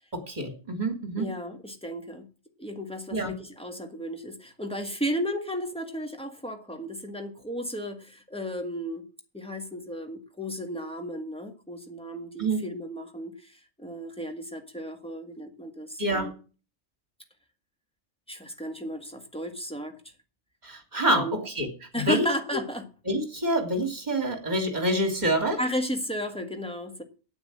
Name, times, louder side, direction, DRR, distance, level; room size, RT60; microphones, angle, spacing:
voice 1, 0.1-1.3 3.1-3.4 12.4-12.6 16.0-16.3 20.6-21.7 21.9-22.3 23.1-25.6, right 1 dB, 35° right, 6 dB, 2.8 m, -27 dB
voice 2, 1.2-2.3 2.6-9.0 9.3-16.3 18.3-20.0 21.0-21.4 21.9-22.9 25.6-27.0, equal, 5° left, 4 dB, 1.7 m, -34 dB
9.4 x 8.8 x 7.7 m, 0.36 s
omnidirectional pair, 1.2 m